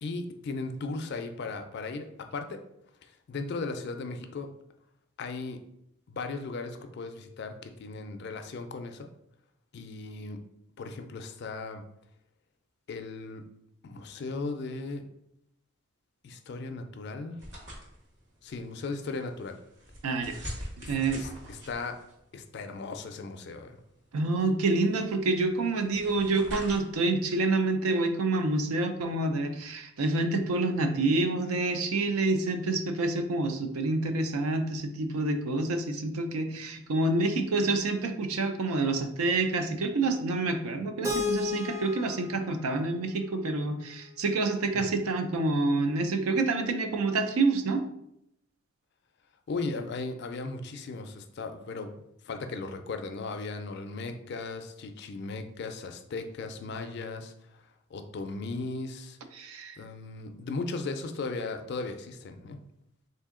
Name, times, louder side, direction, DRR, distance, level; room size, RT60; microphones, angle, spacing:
voice 1, 0.0-2.1 2.3-2.6 3.0-4.5 5.2-5.6 6.1-9.1 9.7-10.4 10.8-11.8 12.9-13.4 13.8-15.0 16.2-17.4 18.4-19.6 20.8-22.0 22.3-23.8 44.7-44.9 49.5-51.9 52.2-57.6 57.9-59.2 59.8-62.6, left 3 dB, 50° left, 6 dB, 0.4 m, -37 dB
sound 1, 17.4-27.7, equal, 55° right, 1.2 m, -45 dB
voice 2, 20.0-20.4 20.9-21.2 24.1-47.8 59.3-59.8, right 3 dB, 80° right, 7 dB, 0.5 m, -27 dB
Keyboard (musical), 41.0-44.0, left 4 dB, 15° right, 0.5 m, -34 dB
3.5 x 2.7 x 3.6 m, 0.78 s
head